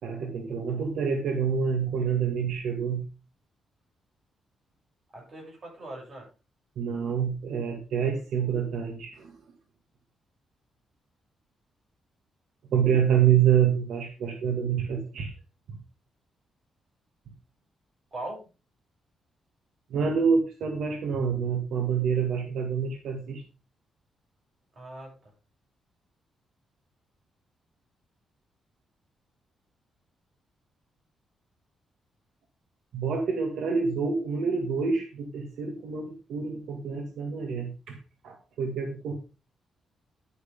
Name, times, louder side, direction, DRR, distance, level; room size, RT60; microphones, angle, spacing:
voice 1, 0.0-3.0 6.8-9.3 12.7-15.3 19.9-23.4 32.9-38.0 38.2-39.1, right 7 dB, 80° right, 3 dB, 2.1 m, -27 dB
voice 2, 5.1-6.2 18.1-18.4 24.8-25.1, right 2 dB, 35° right, -1 dB, 7.4 m, -40 dB
11.0 x 9.5 x 3.6 m, 0.31 s
wide cardioid pair, 170°, 0 cm